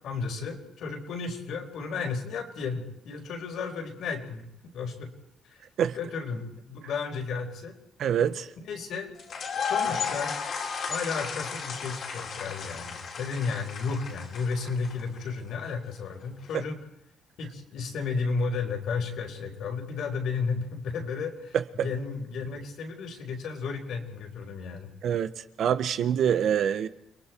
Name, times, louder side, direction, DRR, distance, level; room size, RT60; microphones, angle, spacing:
voice 1, 0.0-5.1 5.5-5.6 5.9-7.8 8.6-9.2 9.5-10.3 10.9-16.8 17.4-24.9, left 4 dB, 70° left, 4.8 m, -33 dB
voice 2, 8.0-8.5 25.0-25.3 25.6-26.9, right 9 dB, 60° right, 1.2 m, -25 dB
sound 1, 9.2-15.2, left 6 dB, 50° left, 3.6 m, -34 dB
29.5 x 21.5 x 4.6 m
cardioid pair, 130°, 0 cm